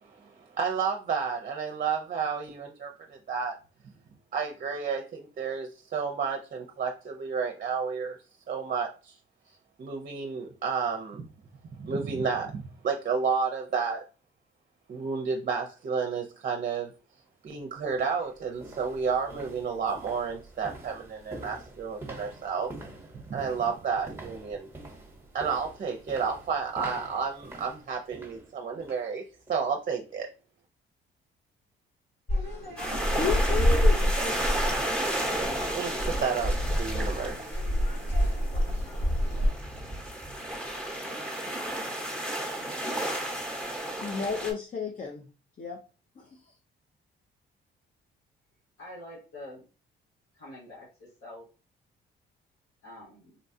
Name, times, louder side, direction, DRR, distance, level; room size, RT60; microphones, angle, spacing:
voice 1, 0.0-3.6 4.3-8.2 8.5-9.2 9.8-11.3 11.8-14.0 14.9-16.9 17.4-22.7 23.1-24.7 25.3-29.2 29.5-30.3 35.7-37.4, right 5 dB, 45° right, 3 dB, 0.6 m, -31 dB
sound 1, 17.2-17.3 17.8-29.1 29.5-29.7 30.2-30.3, right 2 dB, 15° right, 1.1 m, -46 dB
sound 2, 32.3-39.5, equal, 60° left, 1.8 m, -27 dB
sound 3, 32.8-44.5, right 1 dB, 5° left, 1.0 m, -33 dB
voice 2, 33.2-34.6 44.0-45.3 45.6-45.8 46.2-46.5, left 4 dB, 40° left, 2 dB, 0.6 m, -33 dB
voice 3, 48.8-49.6 50.3-51.4 52.8-53.4, left 1 dB, 85° left, -6 dB, 1.6 m, -45 dB
3.9 x 2.2 x 2.6 m, 0.33 s
cardioid pair, 90°, 20 cm